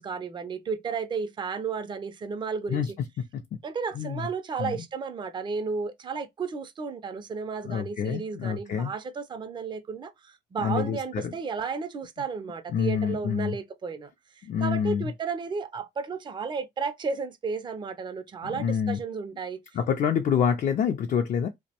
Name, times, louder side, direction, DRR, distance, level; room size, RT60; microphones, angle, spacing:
voice 1, 0.0-3.0 3.6-19.6, right 5 dB, 25° right, 0.4 m, -33 dB
voice 2, 7.6-8.9 10.6-11.3 12.7-13.6 14.4-15.1 18.4-19.0 19.7-21.5, left 7 dB, 45° left, 0.4 m, -27 dB
2.5 x 2.1 x 2.8 m
cardioid pair, 105°, 19 cm